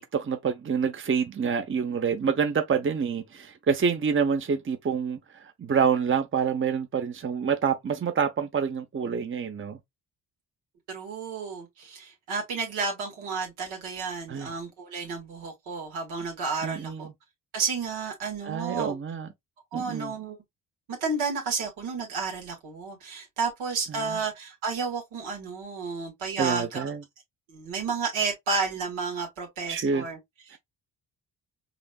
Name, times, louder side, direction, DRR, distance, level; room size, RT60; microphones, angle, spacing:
voice 1, 0.0-5.2 5.6-9.8 14.3-14.5 16.6-17.1 18.4-19.3 19.7-20.1 23.9-24.2 26.4-27.0 29.7-30.1, right 6 dB, 25° right, 0.8 m, -27 dB
voice 2, 10.9-17.1 17.5-19.0 19.7-20.4 20.9-26.8 27.5-30.2, right 4 dB, 80° right, 1.9 m, -31 dB
4.9 x 2.7 x 2.3 m
hypercardioid pair, 45°, 47 cm